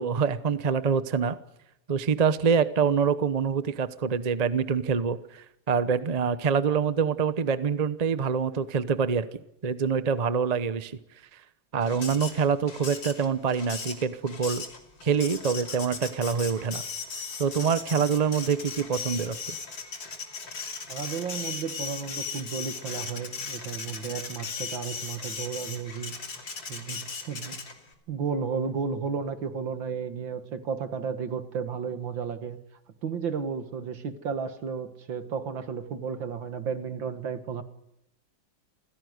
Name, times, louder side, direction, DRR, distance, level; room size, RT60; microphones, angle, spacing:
voice 1, 0.0-1.4 1.9-9.3 9.6-11.0 11.7-14.6 15.0-16.8 17.4-19.6, right 6 dB, 35° right, 14 dB, 0.7 m, -25 dB
Printer, 11.8-27.9, left 5 dB, 75° left, 3.4 m, -37 dB
voice 2, 20.9-26.1 26.7-27.6 28.1-32.6 33.0-37.6, right 6 dB, 75° right, 10 dB, 2.4 m, -33 dB
28.0 x 16.5 x 9.5 m, 0.83 s
omnidirectional pair, 2.1 m